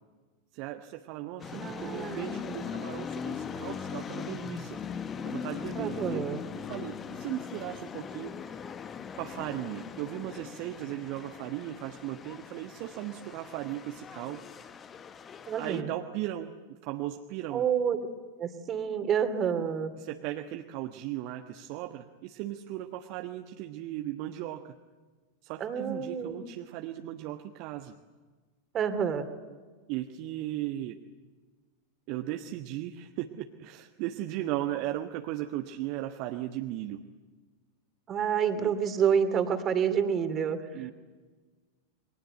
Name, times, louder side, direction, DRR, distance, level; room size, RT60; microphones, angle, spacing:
voice 1, 0.5-5.0 5.2-6.3 6.7-8.6 9.1-14.7 15.6-17.6 20.0-24.8 25.4-27.9 29.9-31.0 32.1-37.0 38.5-38.7 40.7-40.9, right 14 dB, 45° right, 5 dB, 1.3 m, -37 dB
sound 1, 1.4-15.8, left 7 dB, 25° left, 1.3 m, -40 dB
voice 2, 1.5-2.6 5.7-6.4 15.5-15.9 17.5-18.0 18.4-19.9 25.6-26.4 28.7-29.3 38.1-40.6, right 7 dB, 25° right, 10 dB, 2.7 m, -28 dB
29.0 x 23.5 x 8.0 m, 1.4 s
figure-of-eight pair, 90°, 0 cm